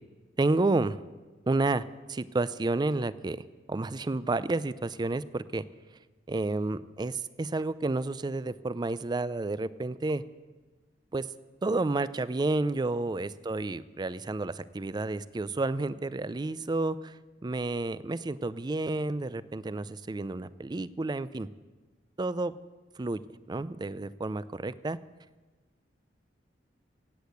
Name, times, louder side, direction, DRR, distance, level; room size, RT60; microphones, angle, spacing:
voice 1, 0.4-1.0 1.5-3.4 3.7-5.6 6.3-10.2 11.1-11.3 11.6-17.1 17.4-21.5 22.2-22.5 23.0-23.2 23.5-25.0, right 2 dB, 25° right, 17 dB, 0.4 m, -30 dB
16.5 x 8.4 x 8.1 m, 1.3 s
head